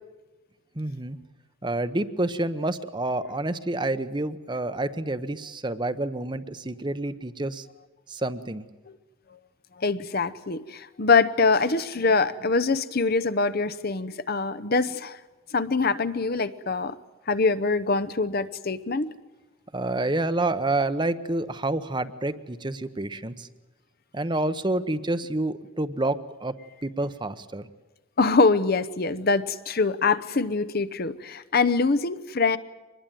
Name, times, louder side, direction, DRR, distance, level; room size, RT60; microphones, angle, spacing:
voice 1, 0.7-1.2 1.6-7.7 8.1-8.7 19.7-23.5 24.1-26.5 26.8-27.7, right 2 dB, 20° right, 12 dB, 0.9 m, -28 dB
voice 2, 9.8-15.2 15.5-17.0 17.3-19.1 28.2-32.6, left 4 dB, 45° left, 13 dB, 0.8 m, -24 dB
24.5 x 20.5 x 9.2 m, 1.1 s
head